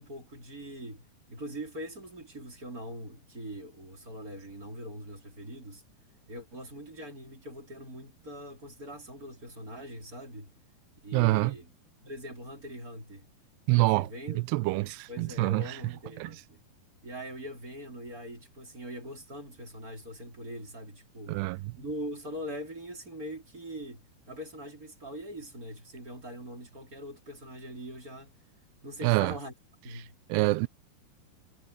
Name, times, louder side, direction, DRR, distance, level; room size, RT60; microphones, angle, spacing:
voice 1, 0.0-5.8 6.3-10.5 11.0-11.7 12.0-13.3 13.7-14.4 15.1-16.6 17.0-21.5 21.7-28.3 28.8-29.5 29.8-30.2, equal, 20° right, 4.5 m, -42 dB
voice 2, 11.1-11.6 13.7-14.1 14.4-15.8 16.2-16.3 21.3-21.7 29.0-29.3 30.3-30.7, right 21 dB, 85° right, 2.6 m, -26 dB
omnidirectional pair, 4.8 m